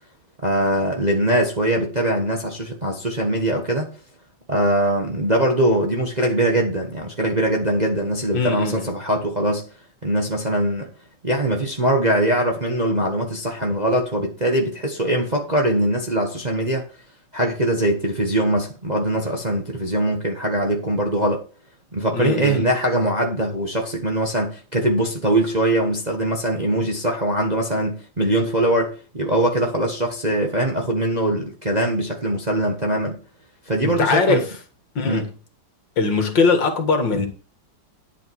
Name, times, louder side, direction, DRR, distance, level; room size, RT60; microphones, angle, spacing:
voice 1, 0.4-3.9 4.5-9.6 10.0-10.9 11.2-16.8 17.3-21.4 21.9-33.2 33.7-34.4 35.1-35.2, right 1 dB, 25° right, 1.2 m, -22 dB
voice 2, 8.3-8.8 22.1-22.7 33.8-34.6 35.0-35.3 36.0-37.3, left 4 dB, 60° left, 2.4 m, -21 dB
10.5 x 8.4 x 4.7 m
omnidirectional pair, 2.3 m